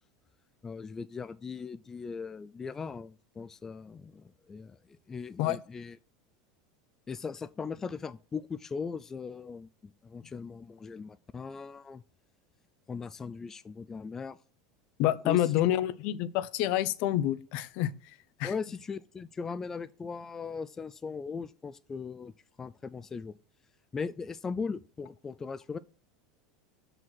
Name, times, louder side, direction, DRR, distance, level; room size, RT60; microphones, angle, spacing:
voice 1, 0.6-6.0 7.1-12.0 12.9-14.4 15.2-15.5 18.4-22.3 22.6-23.3 23.9-25.8, left 5 dB, 20° left, 0.3 m, -39 dB
voice 2, 15.0-18.5, left 13 dB, 60° left, 0.6 m, -28 dB
6.2 x 5.0 x 5.6 m
supercardioid pair, 105°, 2 cm